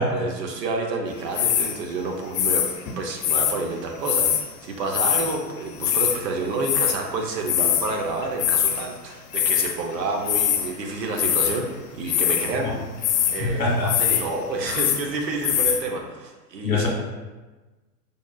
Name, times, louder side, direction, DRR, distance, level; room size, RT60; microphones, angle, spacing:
voice 1, 0.0-2.7 3.0-11.7 11.9-12.7 13.3-16.9, right 3 dB, 85° right, 2 dB, 0.8 m, -29 dB
sound 1, 1.3-1.8 2.3-3.5 4.0-4.4 4.9-5.4 5.6-6.2 6.6-7.0 7.5-8.0 8.2-8.9 9.3-9.8 10.3-10.7 11.1-11.6 12.1-12.5 13.0-13.4 13.8-14.2 14.5-15.0 15.4-15.8, left 10 dB, 55° left, 0.6 m, -22 dB
voice 2, 13.4-13.9 16.6-16.9, left 3 dB, 20° left, -3 dB, 1.1 m, -23 dB
5.1 x 2.4 x 2.3 m, 1.2 s
hypercardioid pair, 135°, 48 cm